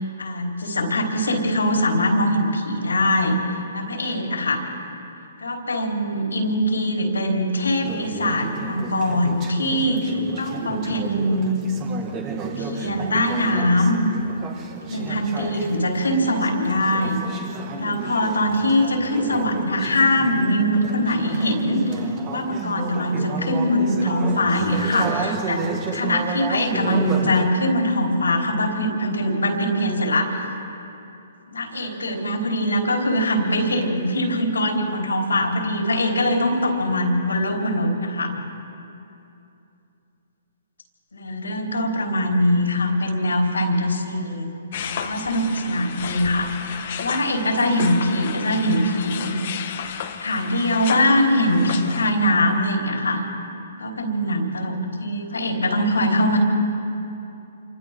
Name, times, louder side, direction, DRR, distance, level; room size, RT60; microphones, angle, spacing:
voice 1, 0.2-3.4 3.7-4.6 5.4-11.5 12.6-14.0 14.9-17.2 17.7-21.8 22.3-25.7 25.9-30.5 31.5-38.3 41.1-44.5 44.8-46.5 47.0-49.4 50.2-53.2 53.8-56.4, left 1 dB, 90° left, 0 dB, 4.1 m, -22 dB
Conversation / Chatter, 7.8-27.5, right 4 dB, 30° right, 2.0 m, -32 dB
sound 1, 44.7-52.1, left 8 dB, 55° left, 1.5 m, -33 dB
28.0 x 24.5 x 3.8 m, 2.7 s
hypercardioid pair, 135°, 0 cm